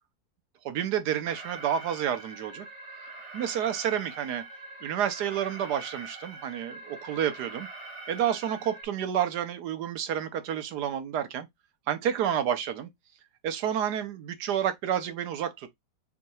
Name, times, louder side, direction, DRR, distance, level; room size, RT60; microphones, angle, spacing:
voice 1, 0.6-2.7 3.3-4.4 4.8-7.7 8.1-11.5 11.9-12.9 13.4-15.8, right 9 dB, 75° right, 1.3 m, -30 dB
Alarm, 1.2-8.8, right 2 dB, 45° right, 1.7 m, -44 dB
6.4 x 2.9 x 2.3 m
omnidirectional pair, 1.8 m